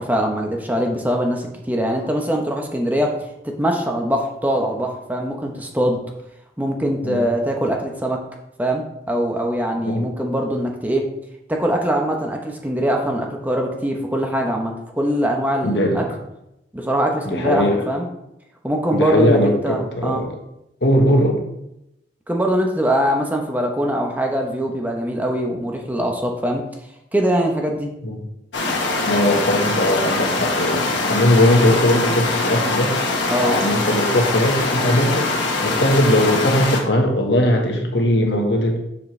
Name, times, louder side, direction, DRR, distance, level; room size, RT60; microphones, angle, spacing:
voice 1, 0.0-3.2 3.4-6.0 6.6-8.2 8.6-11.1 11.5-16.0 16.7-18.1 18.6-20.2 22.3-26.6 27.1-27.9 33.3-33.5, equal, 10° right, 1 dB, 0.9 m, -22 dB
voice 2, 15.6-16.2 17.3-17.8 18.9-20.3 20.8-21.4 28.0-28.2 29.0-33.0 33.4-35.3 35.6-38.8, left 1 dB, 70° left, 2 dB, 1.4 m, -19 dB
sound 1, 28.5-36.8, left 3 dB, 90° left, 1.5 m, -22 dB
7.4 x 6.9 x 3.3 m, 0.85 s
head